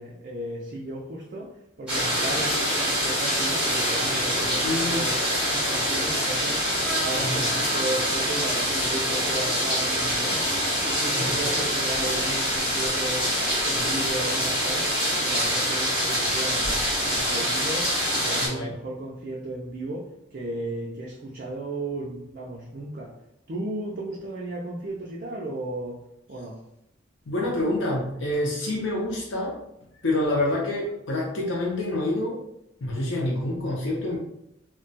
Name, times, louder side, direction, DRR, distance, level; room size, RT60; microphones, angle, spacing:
voice 1, 0.0-1.5 1.8-5.2 5.4-6.7 7.0-10.4 10.8-13.3 13.6-23.1 23.5-26.0 26.3-26.6, right 1 dB, 50° right, -3 dB, 0.5 m, -35 dB
sound 1, 1.9-18.5, equal, 5° right, 1.0 m, -25 dB
voice 2, 4.6-5.1 7.2-7.5 11.1-11.4 18.4-18.7 27.3-29.6 30.0-32.4 32.8-34.2, left 1 dB, 90° left, -3 dB, 0.7 m, -27 dB
Vehicle horn car horn honking, 6.8-8.4 9.9-11.4 13.5-14.7, right 1 dB, 45° left, 1.0 m, -39 dB
2.3 x 2.2 x 3.9 m, 0.80 s
head